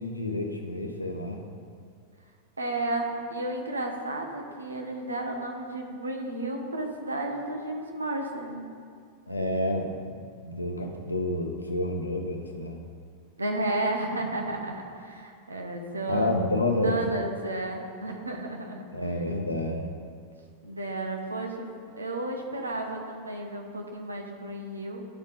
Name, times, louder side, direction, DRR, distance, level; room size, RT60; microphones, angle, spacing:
voice 1, 0.0-1.4 9.3-12.8 16.1-17.0 18.9-19.8, left 1 dB, 85° left, 3 dB, 0.7 m, -29 dB
voice 2, 2.6-8.7 13.4-16.3 16.8-18.8 20.6-25.0, right 2 dB, 80° right, 2 dB, 0.9 m, -32 dB
11.5 x 4.0 x 3.6 m, 2.1 s
figure-of-eight pair, 90°, 0 cm